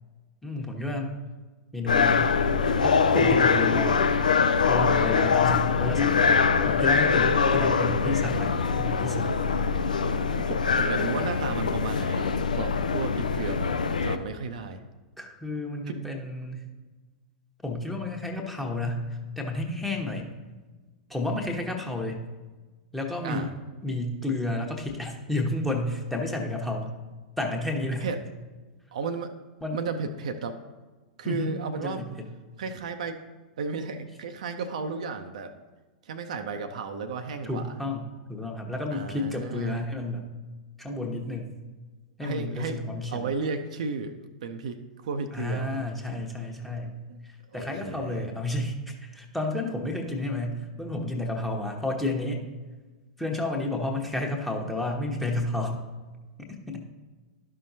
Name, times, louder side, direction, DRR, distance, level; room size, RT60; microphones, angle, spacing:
voice 1, 0.4-1.1 1.7-2.3 2.8-4.0 4.7-6.4 6.6-9.3 15.2-16.7 17.6-20.4 21.1-22.3 22.9-23.5 23.8-26.9 27.4-28.1 29.6-29.8 31.2-32.3 37.4-40.3 40.8-41.6 42.2-43.3 45.3-47.0 47.2-52.4 53.2-55.8 56.7-56.9, left 2 dB, ahead, 1 dB, 1.0 m, -31 dB
sound 1, 1.9-14.2, left 5 dB, 70° left, 0.4 m, -23 dB
voice 2, 10.3-14.8 15.9-16.0 23.2-23.5 28.0-28.2 28.9-29.3 29.7-30.6 31.2-32.0 32.6-33.2 33.6-35.5 36.1-37.7 38.9-39.8 42.2-42.8 43.1-44.2 44.4-45.7 47.1-47.2 47.6-48.3, right 4 dB, 60° right, 7 dB, 0.6 m, -33 dB
12.0 x 5.7 x 2.7 m, 1.3 s
figure-of-eight pair, 95°, 4 cm